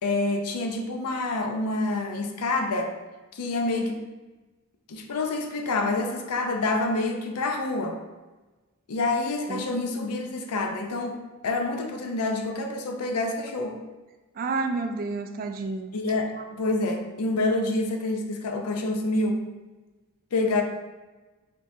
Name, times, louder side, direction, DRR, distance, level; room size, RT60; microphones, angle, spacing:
voice 1, 0.0-2.9 3.3-4.0 4.9-8.0 8.9-13.8 15.9-19.4 20.3-20.6, left 2 dB, 85° left, 4 dB, 0.5 m, -27 dB
voice 2, 14.4-15.9 16.4-16.5, right 3 dB, 40° right, 6 dB, 0.3 m, -30 dB
5.0 x 2.8 x 2.7 m, 1.2 s
head